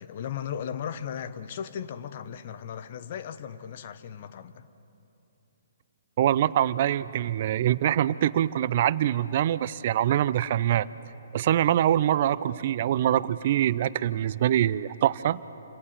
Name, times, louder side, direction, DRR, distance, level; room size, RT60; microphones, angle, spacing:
voice 1, 0.0-4.7, left 8 dB, 45° left, 12 dB, 1.2 m, -36 dB
voice 2, 6.2-10.9 11.3-15.4, right 11 dB, 45° right, 17 dB, 0.6 m, -24 dB
28.5 x 27.0 x 7.5 m, 2.8 s
figure-of-eight pair, 125°, 0 cm